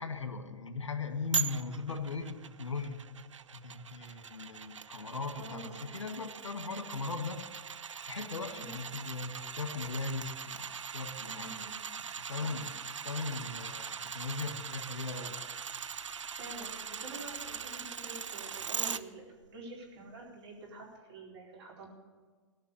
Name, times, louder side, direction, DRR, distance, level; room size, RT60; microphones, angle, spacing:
voice 1, 0.0-3.0 3.5-7.4 8.0-11.5 12.2-12.7 13.0-15.4, left 4 dB, 80° left, 8 dB, 1.6 m, -38 dB
sound 1, 1.3-19.0 19.4-19.5, right 7 dB, 85° right, 0.5 m, -41 dB
voice 2, 5.4-5.9 8.5-8.7 11.2-11.8 12.3-12.6 16.3-21.9, right 2 dB, 60° right, -1 dB, 4.4 m, -47 dB
18.0 x 6.0 x 8.3 m, 1.5 s
figure-of-eight pair, 110°, 15 cm